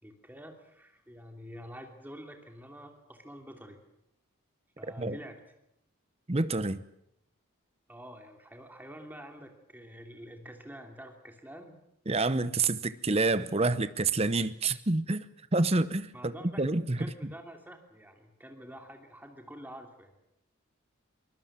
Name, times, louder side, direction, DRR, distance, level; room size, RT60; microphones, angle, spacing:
voice 1, 0.0-3.8 4.8-5.4 7.9-11.8 16.1-16.6 17.0-20.3, equal, 10° right, 2.8 m, -47 dB
voice 2, 6.3-6.8 12.1-15.2 15.5-17.0, right 3 dB, 30° right, 0.8 m, -28 dB
23.5 x 19.0 x 7.5 m
head